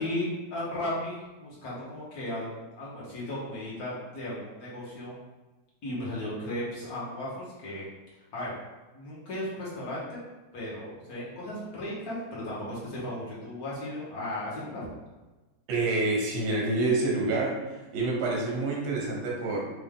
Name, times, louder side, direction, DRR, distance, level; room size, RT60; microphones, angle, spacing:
voice 1, 0.0-5.1 5.8-7.8 8.3-8.5 8.9-10.2 10.5-14.9, left 1 dB, 70° left, -7 dB, 0.8 m, -35 dB
voice 2, 15.7-19.6, right 2 dB, 65° right, -3 dB, 2.1 m, -27 dB
4.4 x 3.4 x 3.6 m, 1.2 s
omnidirectional pair, 3.3 m